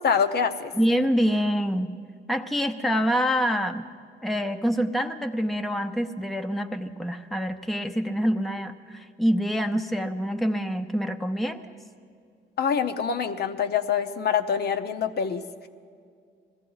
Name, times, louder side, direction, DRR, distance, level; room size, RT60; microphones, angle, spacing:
voice 1, 0.0-0.7 12.6-15.7, left 7 dB, 55° left, 7 dB, 0.7 m, -25 dB
voice 2, 0.8-2.0 2.3-3.8 4.2-11.6, equal, ahead, 6 dB, 0.7 m, -26 dB
21.5 x 14.5 x 3.9 m, 2.2 s
cardioid pair, 90°, 20 cm